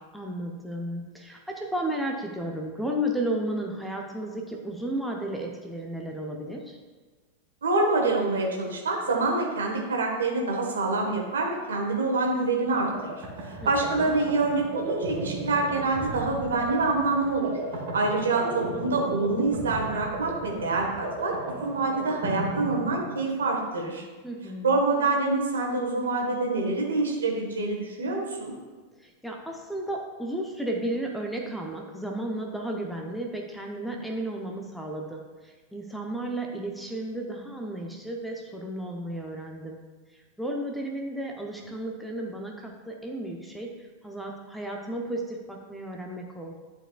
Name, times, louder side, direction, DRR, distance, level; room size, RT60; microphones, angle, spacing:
voice 1, 0.1-6.8 13.6-14.1 24.2-24.7 29.0-39.8 40.1-46.6, right 1 dB, ahead, 1 dB, 0.7 m, -33 dB
voice 2, 7.6-17.6 17.9-21.3 21.6-24.0 24.6-28.5, right 3 dB, 65° right, 0 dB, 1.4 m, -26 dB
sound 1, 12.6-23.5, right 2 dB, 45° right, 1.8 m, -35 dB
11.0 x 4.5 x 2.4 m, 1.3 s
figure-of-eight pair, 90°, 0 cm